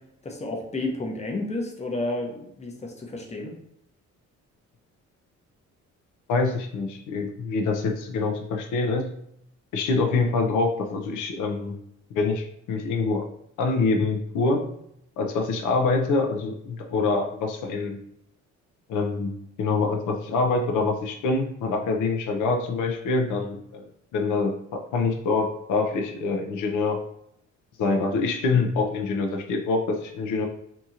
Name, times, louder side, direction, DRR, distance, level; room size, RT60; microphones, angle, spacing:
voice 1, 0.2-3.5, left 2 dB, 20° left, 1 dB, 0.7 m, -31 dB
voice 2, 6.3-9.1 9.7-11.8 12.1-13.3 13.6-14.7 15.2-18.0 18.9-23.9 24.1-27.0 27.8-30.5, left 3 dB, 80° left, 3 dB, 0.5 m, -25 dB
2.8 x 2.7 x 2.4 m, 0.74 s
cardioid pair, 90°, 30 cm